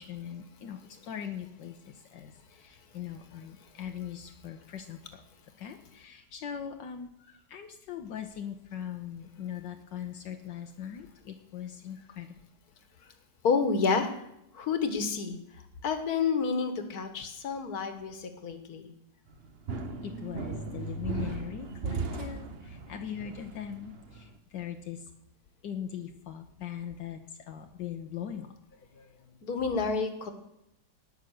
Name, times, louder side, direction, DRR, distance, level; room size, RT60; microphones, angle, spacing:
voice 1, 0.0-5.2 5.6-12.3 20.0-25.1 25.6-28.5, left 9 dB, 80° left, 5 dB, 1.6 m, -40 dB
voice 2, 13.4-14.3 14.5-18.9 29.0-29.1 29.4-30.3, left 5 dB, 60° left, 8 dB, 1.9 m, -30 dB
sound 1, 19.3-24.3, right 4 dB, 40° right, 1.0 m, -37 dB
19.0 x 6.3 x 6.5 m, 0.83 s
omnidirectional pair, 1.9 m